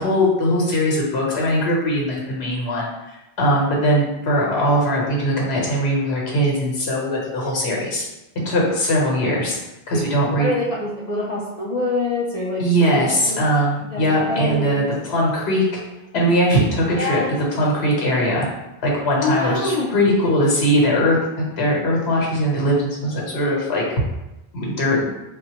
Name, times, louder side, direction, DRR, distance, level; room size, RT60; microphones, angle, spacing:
voice 1, 0.0-8.0 8.4-9.6 9.9-10.5 12.6-15.8 16.1-17.2 17.5-18.5 18.8-23.8 24.5-25.1, equal, 80° left, -3 dB, 1.1 m, -20 dB
voice 2, 10.4-12.6 12.9-13.4 13.9-14.9 17.0-17.3 19.2-19.9, left 2 dB, 50° left, -6 dB, 0.5 m, -25 dB
3.7 x 2.2 x 2.8 m, 0.95 s
omnidirectional pair, 1.1 m